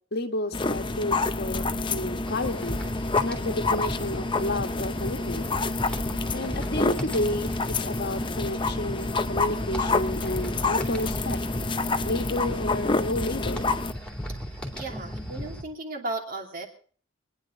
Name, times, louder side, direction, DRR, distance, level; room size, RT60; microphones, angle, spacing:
voice 1, 0.1-2.8 3.2-5.4 6.3-11.4 12.0-13.7, left 1 dB, 50° left, 7 dB, 1.5 m, -31 dB
sound 1, 0.5-13.9, left 3 dB, 25° left, 0.7 m, -28 dB
sound 2, 2.2-15.6, equal, 5° left, 2.6 m, -36 dB
voice 2, 14.7-16.7, right 2 dB, 40° right, 2 dB, 2.8 m, -35 dB
24.5 x 10.0 x 3.8 m, 0.43 s
head